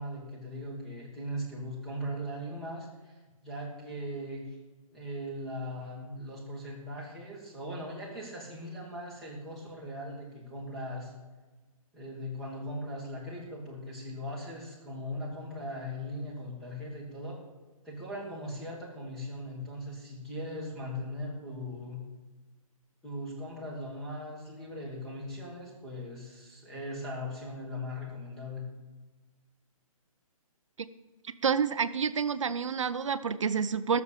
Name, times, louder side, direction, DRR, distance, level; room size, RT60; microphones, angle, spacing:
voice 1, 0.0-3.2 3.4-4.5 4.9-11.1 11.9-17.4 17.8-22.0 23.0-28.6, equal, ahead, -5 dB, 1.6 m, -39 dB
voice 2, 31.4-34.0, right 6 dB, 55° right, 13 dB, 0.7 m, -28 dB
14.5 x 7.1 x 6.9 m, 1.2 s
hypercardioid pair, 175°, 18 cm